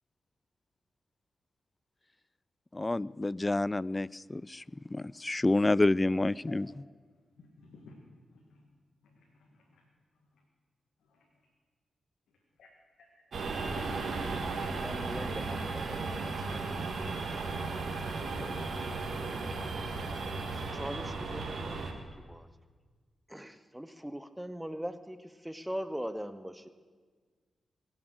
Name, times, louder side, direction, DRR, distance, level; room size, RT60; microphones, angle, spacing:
voice 1, 2.7-4.6 4.9-6.7, left 2 dB, 25° left, 23 dB, 0.4 m, -28 dB
voice 2, 7.4-8.7 9.0-9.8 11.0-11.3 12.6-12.7, left 3 dB, 80° left, -1 dB, 1.9 m, -56 dB
sound 1, 13.3-21.9, right 3 dB, 65° right, 2.1 m, -35 dB
voice 3, 14.7-16.7 17.1-17.2 18.0-18.6 19.0-19.5 20.5-22.5 23.3-26.7, equal, 5° right, 11 dB, 0.9 m, -42 dB
22.0 x 7.4 x 8.0 m, 1.5 s
cardioid pair, 55°, 0 cm